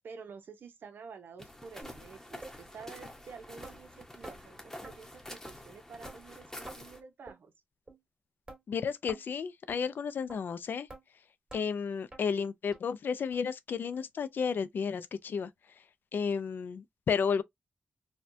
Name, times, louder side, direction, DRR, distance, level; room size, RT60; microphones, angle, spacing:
voice 1, 0.0-7.5, right 5 dB, 80° right, 0.8 m, -49 dB
sound 1, 1.4-7.0, left 1 dB, 10° left, 0.9 m, -48 dB
sound 2, 1.8-2.0 2.4-2.5 3.0-3.1 3.6-3.8 4.2-4.4 4.8-4.9 5.4-5.5 6.0-6.2 6.7-6.8 7.3-7.4 7.9-8.0 8.5-8.6 9.1-9.3 9.7-9.8 10.3-10.4 10.9-11.0 11.5-11.6 12.1-12.2 12.7-12.8 13.3-13.4 13.9-14.0 14.5-14.6, right 2 dB, 25° right, 1.7 m, -47 dB
voice 2, 8.7-10.9 11.5-15.5 16.1-17.4, left 6 dB, 75° left, 0.4 m, -32 dB
4.2 x 2.3 x 2.7 m
wide cardioid pair, 105°, 3 cm